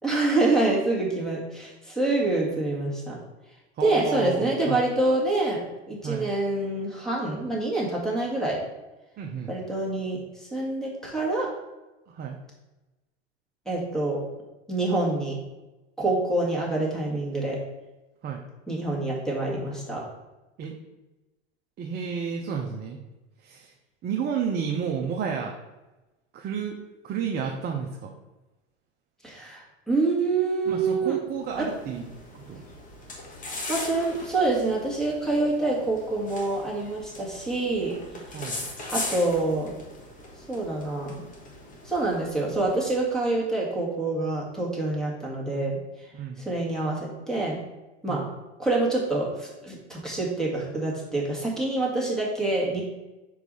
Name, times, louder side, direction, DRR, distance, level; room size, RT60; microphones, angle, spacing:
voice 1, 0.0-3.2 3.8-8.7 9.5-11.5 13.7-14.2 14.7-15.4 16.0-17.6 18.7-20.0 29.2-31.2 31.6-31.7 33.5-38.0 38.3-38.7 38.9-39.7 40.5-41.2 41.8-46.1 46.4-47.6 48.0-48.3 48.6-52.8, right 2 dB, ahead, -3 dB, 1.9 m, -26 dB
voice 2, 3.8-4.9 6.0-6.3 9.2-9.5 12.1-12.4 18.2-18.4 20.6-20.7 21.8-23.0 23.4-23.7 24.0-25.5 26.3-26.8 27.0-28.1 30.7-32.6 38.3-38.7 46.1-46.5 48.1-48.2, right 7 dB, 30° right, 1 dB, 0.7 m, -31 dB
sound 1, 31.4-43.1, left 2 dB, 25° left, 1.5 m, -40 dB
4.8 x 4.6 x 5.5 m, 1.1 s
hypercardioid pair, 115°, 33 cm